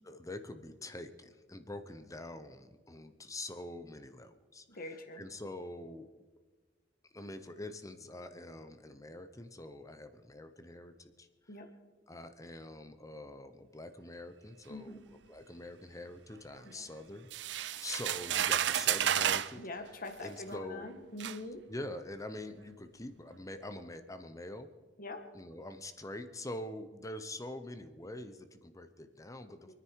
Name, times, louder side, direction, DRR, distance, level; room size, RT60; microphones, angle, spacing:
voice 1, 0.0-4.6 5.2-6.1 7.1-11.3 12.1-17.3 17.8-19.6 20.2-20.9 21.7-24.7 25.3-29.7, left 1 dB, 20° left, 10 dB, 0.9 m, -45 dB
voice 2, 4.7-5.2 11.5-11.7 14.7-15.0 16.6-16.8 17.7-17.8 19.5-21.6 25.0-25.2 29.6-29.7, left 2 dB, 55° left, 6 dB, 1.8 m, -44 dB
sound 1, 17.3-19.5 20.5-20.6 21.2-21.4, right 10 dB, 75° right, 0.5 m, -31 dB
26.5 x 10.0 x 4.7 m, 1.3 s
head